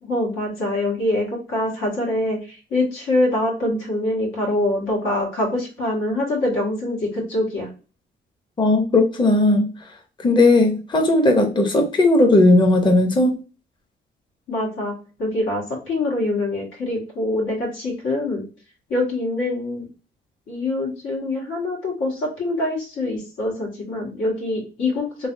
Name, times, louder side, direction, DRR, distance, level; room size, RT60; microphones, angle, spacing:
voice 1, 0.0-7.7 14.5-14.9 15.2-18.4 18.9-19.9 20.5-25.3, left 1 dB, 85° left, 1.8 m, -24 dB
voice 2, 8.6-9.7 10.2-13.4, left 2 dB, 25° left, 0.7 m, -16 dB
3.3 x 3.2 x 2.6 m
cardioid pair, 90°, 20 cm